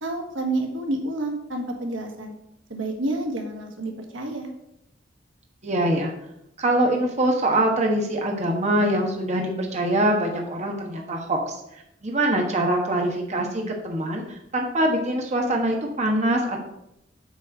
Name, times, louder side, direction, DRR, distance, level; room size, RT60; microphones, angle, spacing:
voice 1, 0.0-2.3 2.7-4.5, right 2 dB, 85° right, 3 dB, 1.5 m, -29 dB
voice 2, 5.6-6.1 6.6-11.6 12.0-16.6, right 1 dB, 40° right, 1 dB, 1.2 m, -23 dB
8.2 x 4.3 x 6.3 m, 0.82 s
head